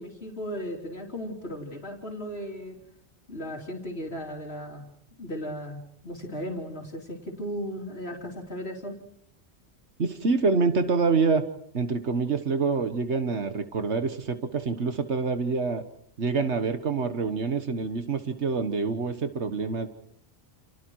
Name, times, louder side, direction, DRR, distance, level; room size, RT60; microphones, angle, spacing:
voice 1, 0.0-2.8 3.3-4.9 5.2-9.0, equal, 65° left, 0 dB, 3.6 m, -36 dB
voice 2, 10.0-11.4 11.7-15.8 16.2-19.9, right 4 dB, 80° right, 8 dB, 1.7 m, -26 dB
30.0 x 29.5 x 4.7 m, 0.68 s
omnidirectional pair, 1.1 m